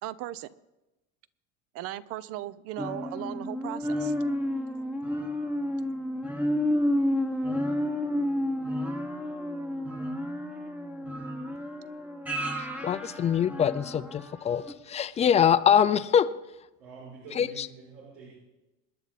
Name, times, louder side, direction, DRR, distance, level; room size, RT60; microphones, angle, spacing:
voice 1, 0.0-0.5 1.7-4.1, right 14 dB, 50° right, 18 dB, 0.7 m, -37 dB
sound 1, 2.8-14.2 14.7-14.8, left 1 dB, 5° right, 1.0 m, -30 dB
voice 2, 12.8-16.3 17.3-17.7, left 8 dB, 20° left, 13 dB, 0.5 m, -24 dB
voice 3, 16.8-18.3, right 4 dB, 85° right, -6 dB, 7.2 m, -46 dB
27.0 x 11.0 x 4.2 m, 1.0 s
cardioid pair, 155°, 32 cm